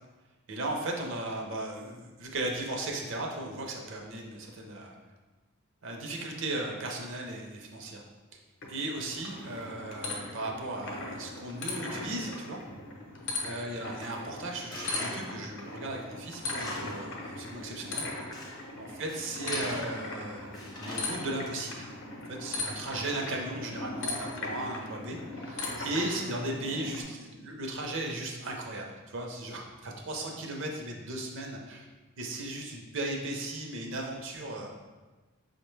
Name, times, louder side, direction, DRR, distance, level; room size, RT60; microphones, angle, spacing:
voice 1, 0.5-4.9 5.8-8.0 8.7-12.6 13.4-21.9 22.3-31.8 32.2-34.7, right 2 dB, 60° right, 1 dB, 0.5 m, -36 dB
sound 1, 8.6-27.0, left 2 dB, 55° left, 0.6 m, -39 dB
Tools, 14.7-15.3 15.7-15.8 16.3-17.1 17.4-17.5 18.1-18.6 19.1-20.1 20.5-21.4, left 1 dB, 20° left, 0.5 m, -41 dB
5.1 x 2.1 x 3.1 m, 1.2 s
head